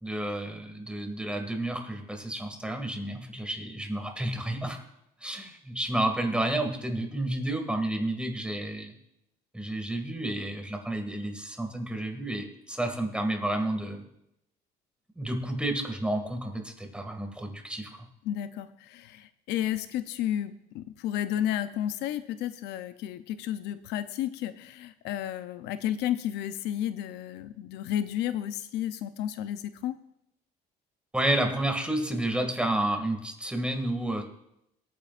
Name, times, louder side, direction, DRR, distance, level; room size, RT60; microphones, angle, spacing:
voice 1, 0.0-4.8 5.2-8.9 9.5-14.0 15.2-18.1 31.1-34.2, right 1 dB, 5° right, 4 dB, 2.1 m, -30 dB
voice 2, 18.2-30.0, left 11 dB, 85° left, 12 dB, 0.6 m, -32 dB
23.5 x 9.4 x 2.5 m, 0.81 s
cardioid pair, 110°, 17 cm